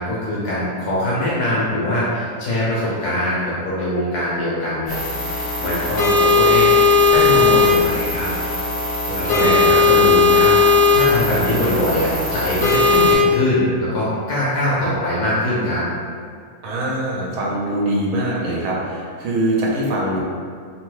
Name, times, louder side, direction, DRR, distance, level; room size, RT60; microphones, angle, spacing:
voice 1, 0.0-8.6 9.1-10.5 10.9-15.8, left 1 dB, 90° left, -7 dB, 1.1 m, -22 dB
sound 1, 4.9-13.1, left 4 dB, 45° left, 1.1 m, -17 dB
voice 2, 9.1-9.7 16.6-20.2, right 1 dB, 70° right, -4 dB, 1.0 m, -23 dB
2.8 x 2.2 x 3.1 m, 2.1 s
omnidirectional pair, 1.6 m